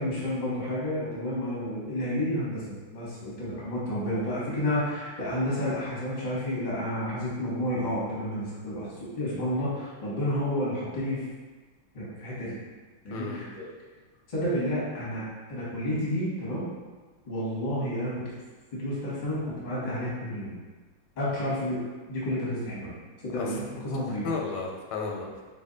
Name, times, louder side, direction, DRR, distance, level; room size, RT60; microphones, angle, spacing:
voice 1, 0.0-8.9 9.2-11.2 11.9-12.6 13.0-13.6 14.3-16.7 17.3-18.3 18.7-20.6 21.2-21.8 22.1-22.9 23.2-24.3, equal, 40° left, -7 dB, 0.6 m, -30 dB
voice 2, 23.3-23.8 24.2-25.4, left 4 dB, 85° left, 0 dB, 1.5 m, -34 dB
3.4 x 2.2 x 3.8 m, 1.3 s
omnidirectional pair, 2.2 m